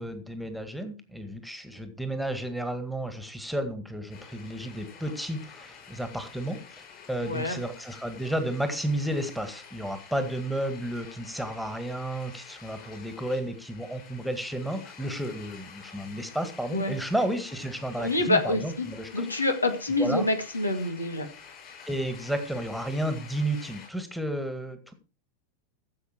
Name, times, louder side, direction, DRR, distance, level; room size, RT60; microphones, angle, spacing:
voice 1, 0.0-6.6 7.1-19.3 20.0-20.3 21.9-24.9, right 1 dB, ahead, 8 dB, 1.9 m, -32 dB
sound 1, 4.1-23.9, left 6 dB, 30° left, 6.9 m, -49 dB
voice 2, 7.2-7.6 16.7-16.9 18.0-18.9 19.1-21.3, left 2 dB, 80° left, 7 dB, 2.3 m, -26 dB
15.5 x 7.9 x 4.6 m, 0.33 s
figure-of-eight pair, 90°, 0 cm